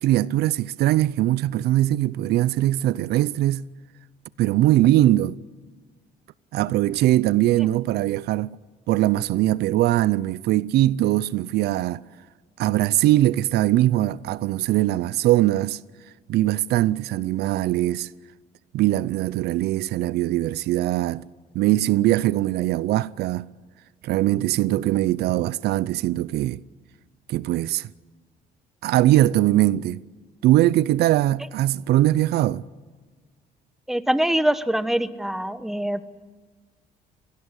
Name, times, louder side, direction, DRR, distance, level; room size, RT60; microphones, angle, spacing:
voice 1, 0.0-3.7 4.4-5.4 6.5-8.5 8.9-12.0 12.6-15.8 16.3-18.1 18.7-21.2 21.5-23.5 24.0-26.6 27.3-27.9 28.8-30.0 30.4-32.6, right 15 dB, 75° right, 0.6 m, -21 dB
voice 2, 33.9-36.1, right 1 dB, ahead, 1.1 m, -24 dB
24.5 x 18.5 x 8.1 m
cardioid pair, 110°, 17 cm